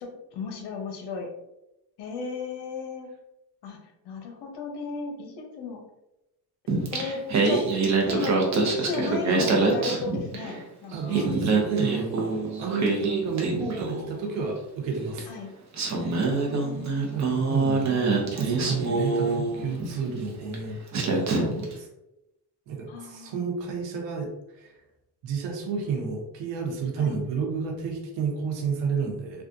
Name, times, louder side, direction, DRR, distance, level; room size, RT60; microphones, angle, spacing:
voice 1, 0.0-1.3 2.0-3.1 3.6-3.8 4.0-5.8 6.9-7.6 8.1-11.2 15.3-15.5 16.3-17.5 22.9-23.4 27.0-27.2, left 4 dB, 70° left, 2 dB, 0.9 m, -35 dB
Singing, 6.7-10.6 10.9-14.2 15.2-15.3 15.7-19.9 20.5-20.7 20.9-21.7, right 3 dB, 40° right, 0.8 m, -25 dB
voice 2, 10.9-15.3 17.1-21.9 22.7-24.3 24.6-24.7 25.2-29.4, right 5 dB, 85° right, 1 dB, 1.0 m, -31 dB
3.5 x 2.3 x 2.6 m, 0.91 s
cardioid pair, 110°, 42 cm